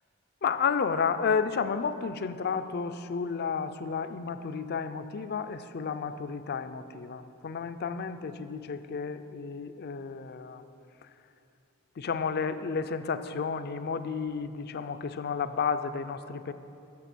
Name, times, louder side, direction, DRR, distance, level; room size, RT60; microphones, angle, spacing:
voice 1, 0.4-10.6 11.0-11.1 12.0-16.5, left 5 dB, 50° left, 11 dB, 0.4 m, -32 dB
11.0 x 7.2 x 6.1 m, 2.7 s
head